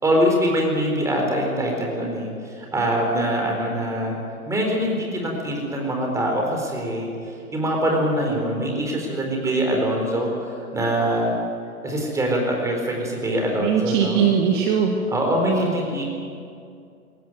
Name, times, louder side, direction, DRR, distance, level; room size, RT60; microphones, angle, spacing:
voice 1, 0.0-4.2 4.5-7.1 7.5-11.3 11.8-14.3 15.1-16.0, equal, 5° right, 1 dB, 4.3 m, -23 dB
voice 2, 13.6-14.9 15.5-15.8, right 8 dB, 30° right, 2 dB, 2.1 m, -20 dB
22.5 x 17.5 x 9.4 m, 2.4 s
figure-of-eight pair, 125°, 44 cm